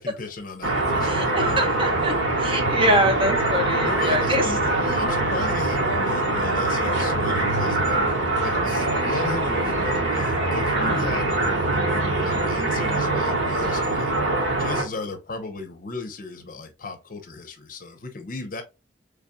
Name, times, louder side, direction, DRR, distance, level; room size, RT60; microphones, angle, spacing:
voice 1, 0.0-1.3 3.8-8.1 8.4-14.1 14.6-18.6, left 3 dB, 50° left, 0.7 m, -36 dB
sound 1, 0.6-14.8, right 2 dB, 80° right, 1.3 m, -23 dB
voice 2, 1.0-4.4 10.8-11.2, equal, 30° right, 0.9 m, -24 dB
4.1 x 3.4 x 2.2 m
head